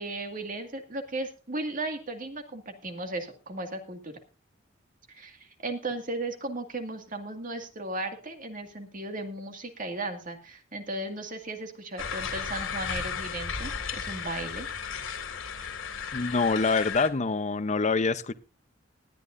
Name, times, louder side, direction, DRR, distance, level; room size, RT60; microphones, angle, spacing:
voice 1, 0.0-4.2 5.1-14.8, right 2 dB, 45° right, 2.1 m, -36 dB
sound 1, 12.0-17.1, left 6 dB, 85° left, 2.4 m, -34 dB
voice 2, 16.1-18.3, left 4 dB, 35° left, 0.7 m, -25 dB
19.5 x 12.0 x 2.6 m
head